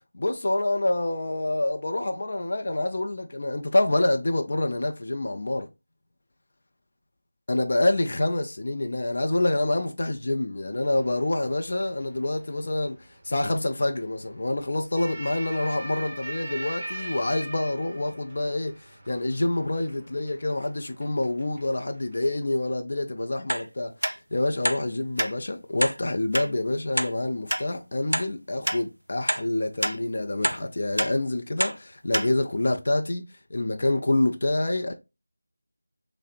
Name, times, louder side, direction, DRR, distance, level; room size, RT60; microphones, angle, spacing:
voice 1, 0.1-5.7 7.5-13.0 13.2-18.7 19.1-23.9 24.3-34.9, left 2 dB, 45° left, 0.5 m, -27 dB
sound 1, 11.0-22.2, right 1 dB, 15° right, 0.9 m, -42 dB
sound 2, 23.5-23.7 24.0-24.2 24.6-24.8 25.2-25.3 25.8-26.0 26.3-26.5 27.0-27.1 27.5-27.6 28.1-28.3 28.7-28.8 29.3-29.4 29.8-30.0 30.4-30.6 31.0-31.1 31.6-31.8 32.1-32.3 32.7-32.8, equal, 85° right, 0.3 m, -26 dB
6.2 x 2.1 x 2.5 m
figure-of-eight pair, 165°, 0 cm